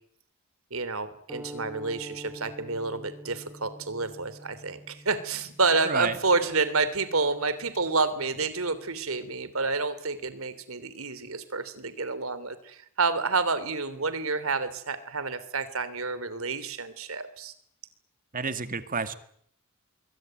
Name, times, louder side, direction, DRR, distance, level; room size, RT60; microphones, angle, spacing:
voice 1, 0.7-17.5, right 4 dB, 80° right, 13 dB, 3.2 m, -29 dB
sound 1, 1.3-9.7, equal, 10° right, 2.5 m, -47 dB
voice 2, 18.3-19.1, right 4 dB, 40° right, 10 dB, 2.0 m, -30 dB
26.0 x 22.5 x 9.1 m, 0.67 s
head